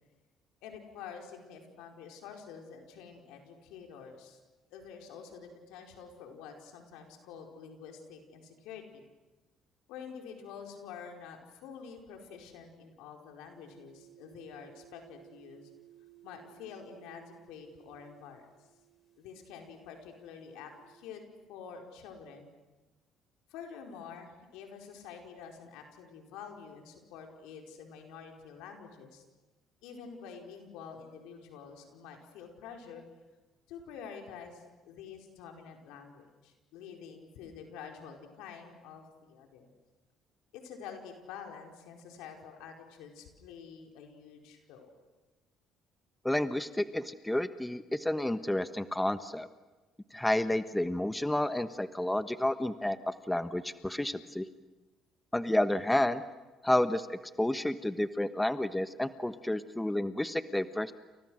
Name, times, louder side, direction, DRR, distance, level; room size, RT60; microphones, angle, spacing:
voice 1, 0.6-4.4 4.7-9.1 9.9-15.7 16.2-18.5 19.2-21.2 21.5-22.5 23.5-29.2 29.8-33.0 33.7-39.7 40.5-44.9, left 6 dB, 80° left, 2 dB, 4.8 m, -48 dB
sound 1, 13.5-21.0, right 12 dB, 40° left, 6.1 m, -59 dB
voice 2, 46.2-49.5 50.1-54.4 55.3-56.2 56.6-60.9, left 1 dB, 10° left, 11 dB, 1.3 m, -30 dB
29.5 x 29.5 x 6.4 m, 1.2 s
supercardioid pair, 75°, 0 cm